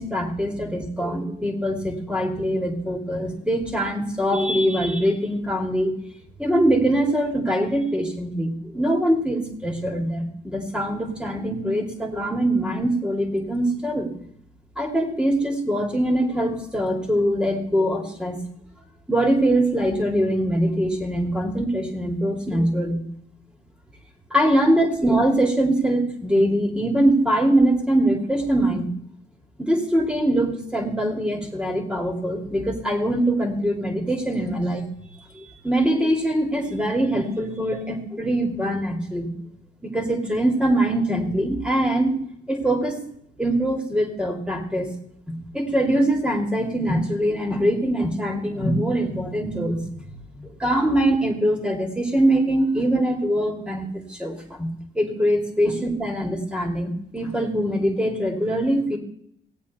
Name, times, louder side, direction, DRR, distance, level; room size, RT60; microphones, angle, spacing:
voice 1, 0.0-5.9 6.4-14.1 14.8-18.4 19.1-23.0 24.3-28.9 29.6-34.8 35.3-39.3 39.8-43.0 43.4-44.9 45.3-50.1 50.4-59.0, right 1 dB, 5° right, 1 dB, 2.6 m, -23 dB
17.0 x 8.4 x 4.3 m, 0.69 s
cardioid pair, 90°, 20 cm